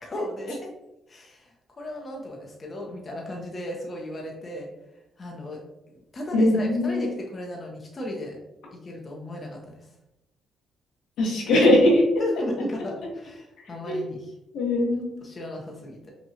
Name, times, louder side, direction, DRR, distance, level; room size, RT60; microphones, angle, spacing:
voice 1, 0.0-0.6 1.1-4.7 5.2-5.6 5.9-8.4 8.7-9.8 12.2-14.3 15.2-16.1, left 1 dB, 35° left, 0 dB, 0.7 m, -35 dB
voice 2, 6.3-7.1 11.2-12.0 13.9-14.1 14.5-15.2, left 1 dB, 85° left, -3 dB, 1.3 m, -20 dB
5.6 x 2.2 x 2.8 m, 0.93 s
cardioid pair, 90°, 0 cm